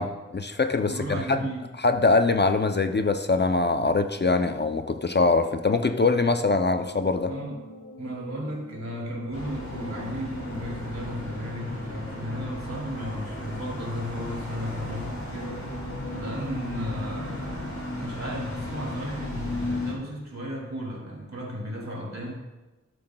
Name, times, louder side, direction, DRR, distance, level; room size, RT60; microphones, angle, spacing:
voice 1, 0.0-1.5 1.8-7.3, left 3 dB, 35° left, 8 dB, 0.4 m, -23 dB
voice 2, 0.8-1.7 7.3-7.6 8.0-15.6 16.1-22.3, equal, 65° right, -2 dB, 2.6 m, -35 dB
sound 1, 4.9-13.2 13.6-13.7 14.7-16.5, equal, 90° left, 1.9 m, -46 dB
sound 2, 9.3-19.9, left 1 dB, 70° left, 2.3 m, -35 dB
13.0 x 7.5 x 2.2 m, 1.1 s
wide cardioid pair, 65°, 29 cm